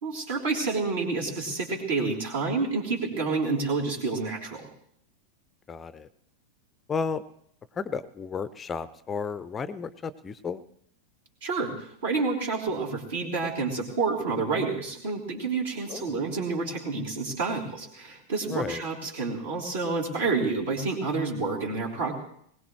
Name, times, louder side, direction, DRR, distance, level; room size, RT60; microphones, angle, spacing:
voice 1, 0.0-4.7 11.4-22.1, right 4 dB, 60° right, -1 dB, 3.4 m, -29 dB
voice 2, 5.7-6.1 6.9-7.2 7.8-10.6 15.9-16.2 18.5-18.8, left 5 dB, 20° left, 16 dB, 0.5 m, -33 dB
21.0 x 18.5 x 3.2 m, 0.69 s
figure-of-eight pair, 90°, 0 cm